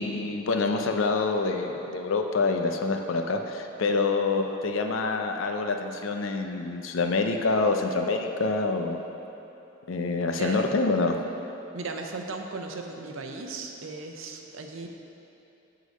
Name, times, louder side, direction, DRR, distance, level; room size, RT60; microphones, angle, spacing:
voice 1, 0.0-9.0 9.9-11.2, left 3 dB, 75° left, 4 dB, 0.6 m, -26 dB
voice 2, 11.7-14.9, right 3 dB, 80° right, 3 dB, 0.7 m, -36 dB
8.2 x 3.9 x 6.2 m, 3.0 s
head